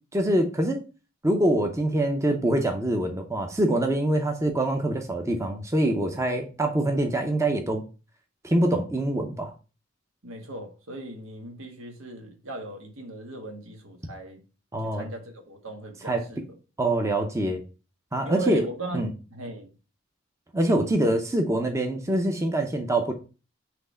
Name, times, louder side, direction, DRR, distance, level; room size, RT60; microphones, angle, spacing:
voice 1, 0.1-0.8 1.2-7.8 8.4-9.5 14.7-15.1 16.0-16.2 16.8-17.6 18.1-18.6 18.9-19.1 20.5-23.1, right 1 dB, 15° right, 0.7 m, -24 dB
voice 2, 10.2-14.4 14.8-16.4 18.2-19.0 19.3-19.7, right 1 dB, 80° right, 1.5 m, -37 dB
5.9 x 3.2 x 5.5 m
head